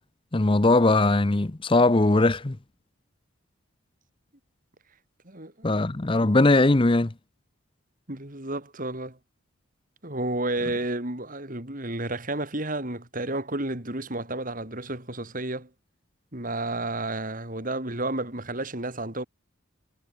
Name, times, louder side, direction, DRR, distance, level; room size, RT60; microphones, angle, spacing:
voice 1, 0.3-2.6 5.6-7.1, left 2 dB, 25° left, 0.7 m, -20 dB
voice 2, 5.3-5.7 8.1-9.2 10.0-15.7 16.3-19.2, right 2 dB, 40° right, 3.6 m, -31 dB
head